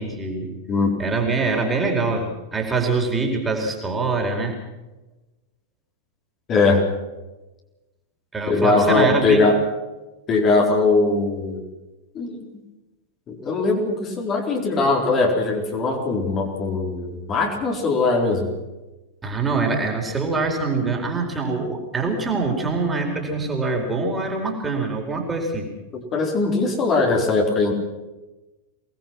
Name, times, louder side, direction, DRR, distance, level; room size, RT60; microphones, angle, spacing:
voice 1, 0.0-0.5 1.0-4.6 8.3-9.5 19.2-25.7, right 3 dB, 15° right, 1 dB, 4.6 m, -24 dB
voice 2, 6.5-6.8 8.5-9.6 10.3-11.6 12.1-12.5 13.3-18.5 25.9-27.7, left 3 dB, 30° left, 0 dB, 4.2 m, -20 dB
24.5 x 19.5 x 6.0 m, 1.1 s
figure-of-eight pair, 90°, 0 cm